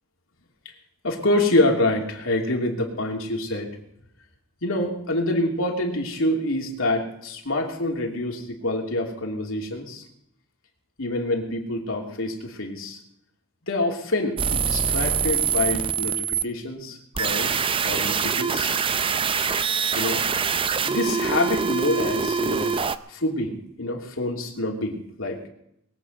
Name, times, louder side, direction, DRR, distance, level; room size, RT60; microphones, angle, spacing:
voice 1, 1.0-3.7 4.6-10.0 11.0-13.0 13.7-18.8 19.9-20.2 20.8-22.7 23.1-25.4, left 1 dB, 70° left, 1 dB, 3.1 m, -26 dB
sound 1, 14.4-16.4 17.2-23.0, right 6 dB, 25° right, 0.5 m, -24 dB
22.0 x 8.7 x 5.6 m, 0.75 s
head